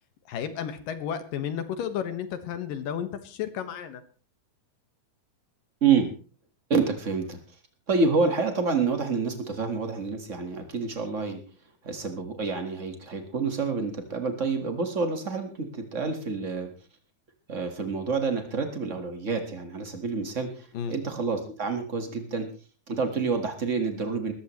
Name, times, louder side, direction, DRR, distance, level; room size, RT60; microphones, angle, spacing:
voice 1, 0.3-4.0 20.7-21.0, left 8 dB, 70° left, 9 dB, 2.9 m, -32 dB
voice 2, 5.8-6.1 6.7-7.4 7.9-11.4 11.8-16.7 17.5-22.5 22.9-24.3, right 4 dB, 70° right, 6 dB, 0.7 m, -28 dB
20.0 x 14.5 x 3.1 m, 0.36 s
omnidirectional pair, 4.4 m